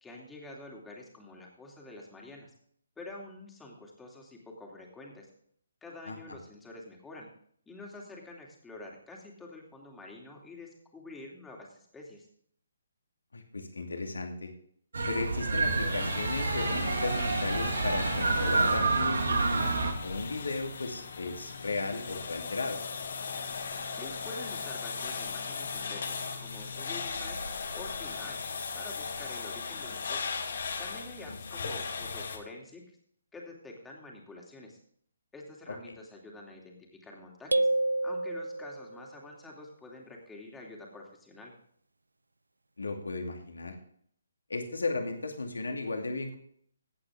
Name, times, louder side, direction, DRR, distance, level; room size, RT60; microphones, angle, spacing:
voice 1, 0.0-2.5 3.0-5.3 5.8-7.3 7.7-12.3 23.9-28.4 28.7-30.2 30.8-32.8 33.3-34.8 35.3-37.7 38.0-41.5, left 2 dB, 10° left, -1 dB, 2.7 m, -47 dB
voice 2, 13.3-14.5 15.1-22.8 31.3-31.4 42.8-43.8 44.5-46.4, left 3 dB, 75° left, 3 dB, 2.5 m, -35 dB
sound 1, 14.9-19.9, right 4 dB, 70° right, 2.1 m, -28 dB
sound 2, 15.6-32.4, left 4 dB, 60° left, 2.0 m, -37 dB
sound 3, 37.5-39.0, right 2 dB, 85° right, 0.3 m, -28 dB
15.5 x 8.5 x 3.7 m, 0.64 s
figure-of-eight pair, 140°, 0 cm